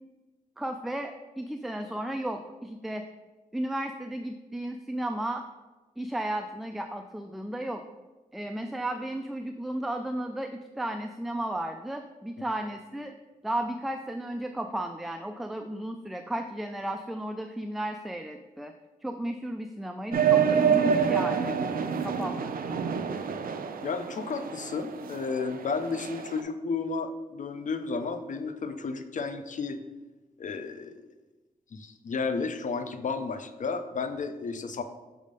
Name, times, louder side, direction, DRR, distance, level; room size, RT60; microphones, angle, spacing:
voice 1, 0.6-3.1 3.5-5.4 6.0-7.9 8.3-13.2 13.4-18.7 19.0-21.6 22.0-22.8, right 1 dB, ahead, 6 dB, 0.3 m, -34 dB
sound 1, 20.1-26.4, right 7 dB, 70° right, 0.5 m, -27 dB
voice 2, 23.8-29.8 30.4-31.1 31.7-34.8, left 4 dB, 55° left, 9 dB, 0.5 m, -32 dB
6.3 x 3.5 x 5.2 m, 1.2 s
cardioid pair, 85°, 15 cm